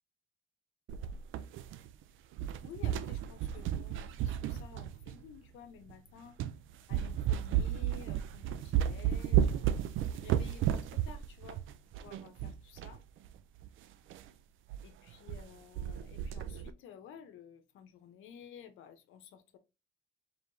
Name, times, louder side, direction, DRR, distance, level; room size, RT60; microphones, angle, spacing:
sound 1, 0.9-2.0 2.3-5.3 5.9-6.0 6.4-6.6 6.9-13.0 13.2-13.3 13.6-13.7 14.1-14.3 14.7-14.8 15.1-15.5 15.8-16.7, right 10 dB, 80° right, 0.4 m, -33 dB
voice 1, 2.6-6.4 6.9-9.7 10.1-11.6 12.0-13.0 14.8-19.6, left 8 dB, 85° left, 0.8 m, -53 dB
4.5 x 3.4 x 2.6 m
cardioid pair, 90°, 20 cm